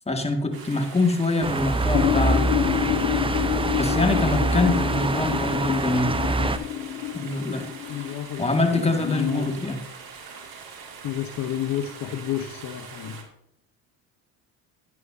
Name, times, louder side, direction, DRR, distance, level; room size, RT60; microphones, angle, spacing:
voice 1, 0.1-2.5 3.7-6.2 7.1-7.7 8.4-9.7, left 2 dB, 15° left, 4 dB, 2.0 m, -24 dB
sound 1, 0.5-13.2, right 5 dB, 50° right, 2.3 m, -43 dB
sound 2, 1.4-6.6, right 3 dB, 10° right, 0.7 m, -25 dB
sound 3, 1.9-8.1, left 12 dB, 80° left, 0.7 m, -27 dB
voice 2, 7.9-9.7 11.0-13.2, left 11 dB, 50° left, 7 dB, 1.0 m, -31 dB
13.5 x 9.5 x 2.7 m, 0.76 s
hypercardioid pair, 70°, 45 cm